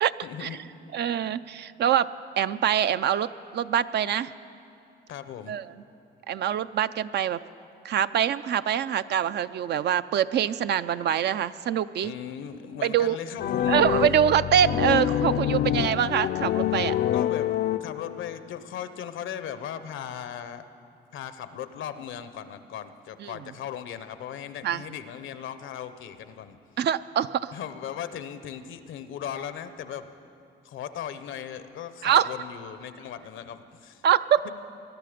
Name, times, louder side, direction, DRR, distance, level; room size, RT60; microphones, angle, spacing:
voice 1, 0.2-0.7 5.1-5.6 12.0-13.8 14.2-14.3 17.1-20.6 21.1-26.6 27.5-30.1 30.6-34.0 34.4-34.5, left 9 dB, 80° left, 11 dB, 0.8 m, -38 dB
voice 2, 0.9-2.1 2.4-3.3 3.5-4.3 5.5-5.7 6.3-7.4 7.8-12.1 12.8-13.2 13.7-16.9 23.2-23.3 24.6-24.8 26.8-27.5 32.0-32.3 34.0-34.5, right 9 dB, 60° right, 14 dB, 0.4 m, -24 dB
sound 1, 13.4-18.3, left 11 dB, 55° left, 0.4 m, -26 dB
21.0 x 12.0 x 5.1 m, 2.6 s
cardioid pair, 90°, 20 cm